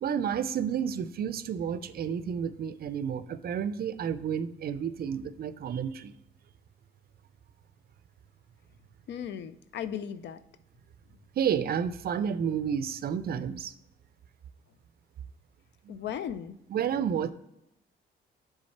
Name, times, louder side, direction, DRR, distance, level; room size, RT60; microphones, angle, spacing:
voice 1, 0.0-6.1 11.4-13.7 15.8-16.0 16.7-17.3, right 8 dB, 50° right, 14 dB, 0.4 m, -31 dB
voice 2, 9.1-10.4 15.9-16.6, left 9 dB, 65° left, 12 dB, 0.4 m, -36 dB
6.5 x 3.6 x 4.1 m, 0.83 s
cardioid pair, 90°, 20 cm